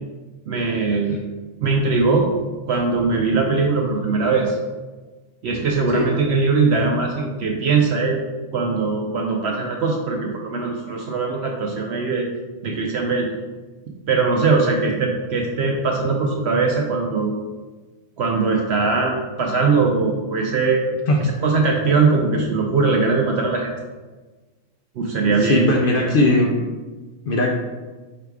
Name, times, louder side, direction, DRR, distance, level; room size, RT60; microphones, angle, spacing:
voice 1, 0.5-1.2 1.6-2.3 2.7-4.6 5.4-8.2 8.5-12.3 12.6-13.3 14.1-17.3 18.2-20.8 21.2-23.7 25.0-26.1, right 4 dB, 65° right, 0 dB, 0.7 m, -20 dB
voice 2, 25.2-26.5 27.3-27.5, left 2 dB, 70° left, 0 dB, 0.5 m, -19 dB
4.8 x 2.3 x 4.7 m, 1.3 s
omnidirectional pair, 1.5 m